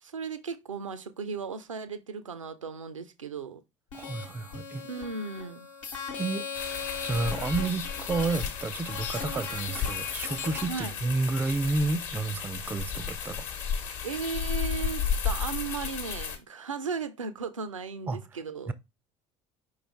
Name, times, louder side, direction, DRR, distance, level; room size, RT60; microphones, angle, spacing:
voice 1, 0.0-3.6 4.8-5.7 10.7-11.0 14.0-18.7, right 5 dB, 80° right, 0.5 m, -36 dB
sound 1, 3.9-10.6, left 6 dB, 75° left, 1.0 m, -38 dB
voice 2, 3.9-4.8 6.2-6.5 7.0-13.4 18.1-18.2 18.7-18.8, right 3 dB, 10° right, 0.3 m, -30 dB
sound 2, 6.5-16.4, left 7 dB, 55° left, 0.9 m, -33 dB
4.8 x 3.2 x 3.3 m
figure-of-eight pair, 60°, 16 cm